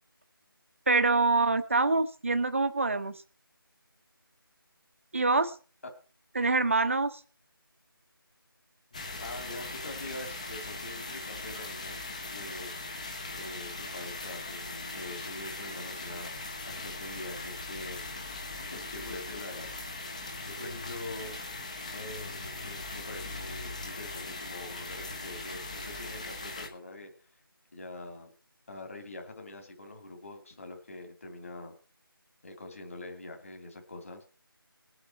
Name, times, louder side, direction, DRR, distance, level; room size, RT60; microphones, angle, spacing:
voice 1, 0.9-3.1 5.1-5.5 6.3-7.1 20.6-20.7, right 3 dB, 35° right, 10 dB, 1.1 m, -25 dB
sound 1, 8.9-26.7, left 2 dB, 20° left, 1.1 m, -40 dB
voice 2, 9.1-12.0 12.3-12.8 13.3-16.4 16.7-21.4 21.9-27.1 27.7-28.3 28.7-31.7 32.4-34.2, left 2 dB, 35° left, 4 dB, 2.8 m, -44 dB
20.5 x 8.0 x 4.3 m, 0.38 s
figure-of-eight pair, 175°, 12 cm